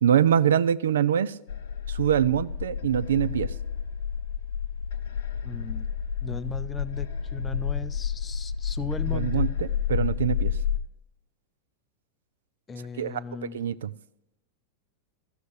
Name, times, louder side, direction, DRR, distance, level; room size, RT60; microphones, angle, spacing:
voice 1, 0.0-1.4 1.9-3.5 9.1-10.6 13.0-13.2 13.5-13.9, right 9 dB, 65° right, 15 dB, 0.3 m, -24 dB
sound 1, 1.5-10.8, left 8 dB, 55° left, 0.8 m, -30 dB
voice 2, 5.4-5.9 6.2-9.5 12.7-13.6, left 4 dB, 15° left, 14 dB, 0.4 m, -37 dB
13.5 x 6.5 x 6.3 m, 0.86 s
figure-of-eight pair, 90°, 0 cm